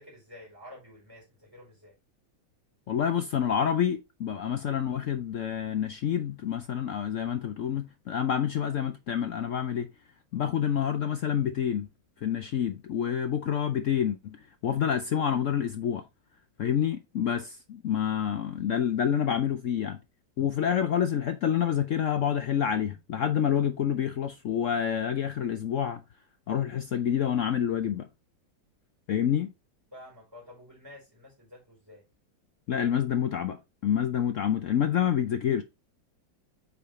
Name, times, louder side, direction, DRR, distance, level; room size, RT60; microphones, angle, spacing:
voice 1, 0.0-1.9 29.9-32.0, left 1 dB, 10° right, 4.7 m, -50 dB
voice 2, 2.9-9.9 10.3-11.9 12.2-14.4 14.6-16.0 16.6-20.0 20.4-26.0 26.5-28.1 29.1-29.5 32.7-35.6, left 9 dB, 75° left, 0.7 m, -28 dB
8.5 x 4.9 x 3.1 m
omnidirectional pair, 2.0 m